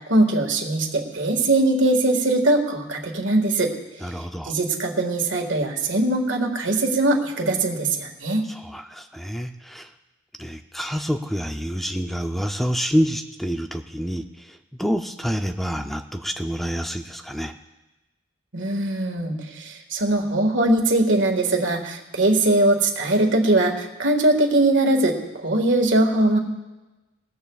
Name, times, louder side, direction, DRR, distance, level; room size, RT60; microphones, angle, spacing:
voice 1, 0.1-3.7 4.4-8.5 18.5-26.4, right 2 dB, 85° right, 3 dB, 1.8 m, -21 dB
voice 2, 4.0-4.5 8.5-9.9 10.4-17.5, equal, ahead, 6 dB, 0.4 m, -27 dB
20.5 x 17.5 x 2.4 m, 1.1 s
head